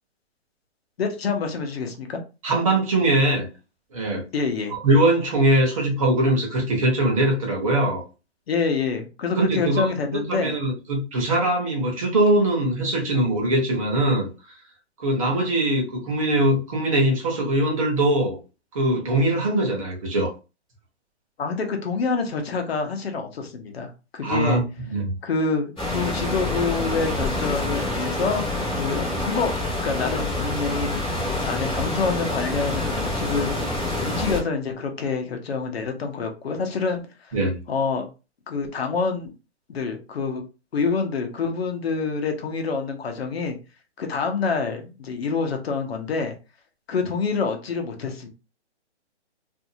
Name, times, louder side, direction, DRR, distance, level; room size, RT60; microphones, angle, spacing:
voice 1, 1.0-2.2 4.3-4.7 8.5-10.5 21.4-24.6 25.2-29.5 29.8-31.0 31.4-33.5 34.0-37.0 37.3-37.4 37.7-38.1 38.5-39.3 39.7-40.4 40.7-43.6 44.0-46.3 46.9-48.3, left 4 dB, 60° left, 0.8 m, -27 dB
voice 2, 2.4-3.5 3.9-4.2 4.7-8.0 9.4-9.8 10.1-14.3 15.0-18.4 18.7-20.3 24.2-25.1 37.3-37.5, right 1 dB, 30° right, 0.9 m, -21 dB
sound 1, 25.8-34.4, left 2 dB, 5° left, 0.6 m, -27 dB
2.6 x 2.4 x 2.7 m
hypercardioid pair, 165°, 35 cm